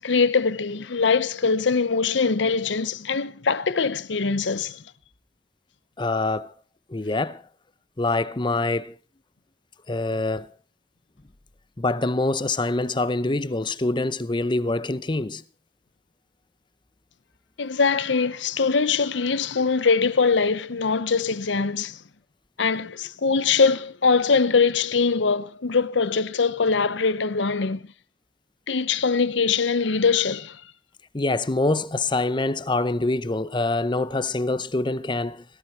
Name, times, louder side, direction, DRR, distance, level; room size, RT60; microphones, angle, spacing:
voice 1, 0.0-4.8 17.6-22.0 22.6-27.8 28.7-30.6, left 5 dB, 75° left, 0.8 m, -22 dB
voice 2, 6.0-6.5 6.9-7.4 8.0-8.9 9.9-10.5 11.8-15.4 31.1-35.4, left 2 dB, 25° left, 0.7 m, -25 dB
17.0 x 14.5 x 4.5 m
head